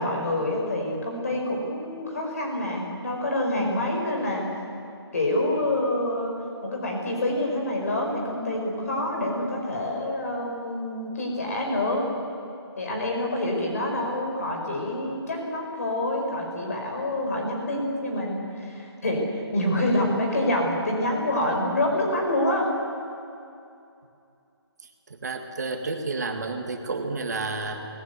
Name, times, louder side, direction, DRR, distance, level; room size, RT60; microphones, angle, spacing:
voice 1, 0.0-4.4 5.1-6.3 6.6-12.1 12.8-22.7, left 1 dB, 35° left, 1 dB, 5.0 m, -27 dB
voice 2, 25.1-27.8, right 3 dB, 40° right, 5 dB, 2.1 m, -30 dB
22.0 x 20.0 x 8.3 m, 2.6 s
hypercardioid pair, 180°, 14 cm